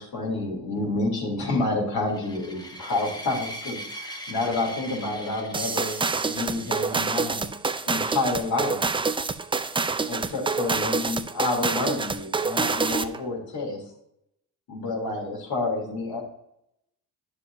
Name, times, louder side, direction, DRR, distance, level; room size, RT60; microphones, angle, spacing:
voice 1, 0.0-6.0 6.3-7.4 7.8-8.8 10.1-13.8 14.7-16.2, left 2 dB, 65° left, -1 dB, 3.4 m, -29 dB
sound 1, 2.1-7.3, equal, 10° left, 1.2 m, -40 dB
sound 2, 5.5-13.2, right 4 dB, 15° right, 0.4 m, -27 dB
9.7 x 7.0 x 2.7 m, 0.79 s
cardioid pair, 80°, 39 cm